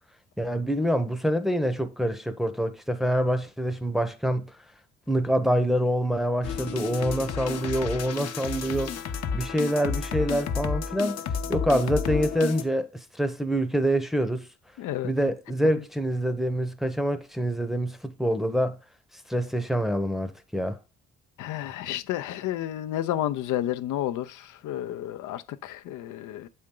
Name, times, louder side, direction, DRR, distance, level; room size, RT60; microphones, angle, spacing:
voice 1, 0.4-4.5 5.1-9.0 9.3-11.2 11.5-12.9 13.2-14.5 15.0-18.8 19.3-20.8, equal, ahead, 0.7 m, -26 dB
sound 1, 6.4-12.6, left 6 dB, 60° left, 0.8 m, -31 dB
voice 2, 14.8-15.1 21.4-26.5, left 12 dB, 85° left, 0.6 m, -31 dB
7.6 x 4.3 x 3.7 m
cardioid pair, 90°, 30 cm